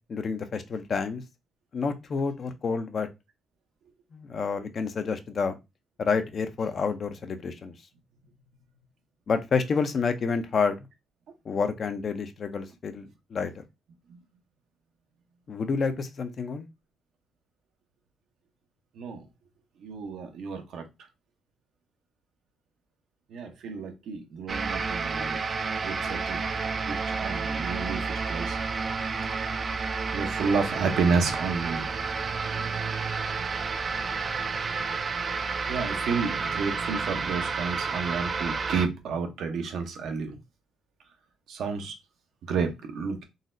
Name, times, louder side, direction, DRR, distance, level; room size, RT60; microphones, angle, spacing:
voice 1, 0.1-1.2 1.7-3.1 4.1-5.6 6.0-7.7 9.3-10.9 11.5-13.6 15.5-16.7, left 5 dB, 50° left, 0.5 m, -29 dB
voice 2, 19.8-20.9 23.3-25.4 25.8-26.4 26.8-28.6 30.1-31.9 35.7-40.4 41.5-41.9 42.4-43.2, right 5 dB, 75° right, 0.7 m, -30 dB
sound 1, 24.5-38.9, right 4 dB, 40° right, 0.3 m, -30 dB
3.9 x 2.0 x 2.5 m
cardioid pair, 90°, 0 cm